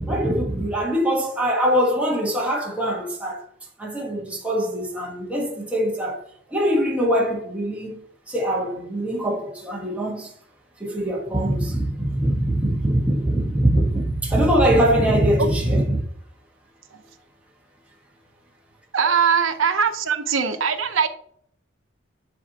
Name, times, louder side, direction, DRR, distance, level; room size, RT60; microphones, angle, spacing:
voice 1, 0.0-3.4 3.8-6.2 6.5-8.0 8.3-10.3 10.8-16.0, equal, 5° right, 1.4 m, -22 dB
voice 2, 18.9-21.1, right 6 dB, 75° right, 0.8 m, -21 dB
10.5 x 4.3 x 2.9 m
head